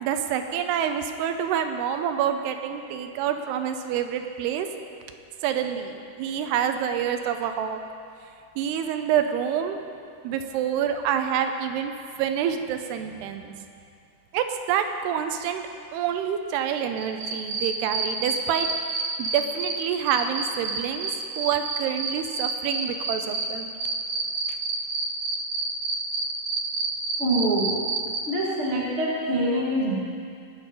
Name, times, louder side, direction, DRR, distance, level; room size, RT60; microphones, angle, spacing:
voice 1, 0.0-4.7 5.4-7.8 8.6-9.8 10.2-11.9 12.2-13.5 14.3-15.6 15.9-18.7 19.2-21.1 21.4-23.7, right 9 dB, 85° right, 7 dB, 2.7 m, -27 dB
sound 1, 17.0-19.7 20.1-23.5 23.8-28.2, right 4 dB, 65° right, 2.5 m, -28 dB
voice 2, 27.2-27.8 28.3-30.0, right 1 dB, 45° right, -4 dB, 0.9 m, -25 dB
19.5 x 6.5 x 5.2 m, 2.4 s
omnidirectional pair, 4.6 m